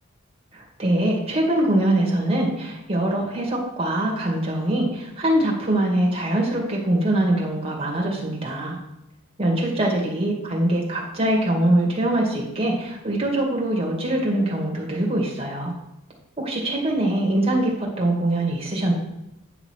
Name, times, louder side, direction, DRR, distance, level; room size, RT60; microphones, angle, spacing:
voice 1, 0.5-8.8 9.4-15.7 16.4-18.9, right 1 dB, 30° right, -2 dB, 2.4 m, -23 dB
9.8 x 5.9 x 4.6 m, 0.91 s
head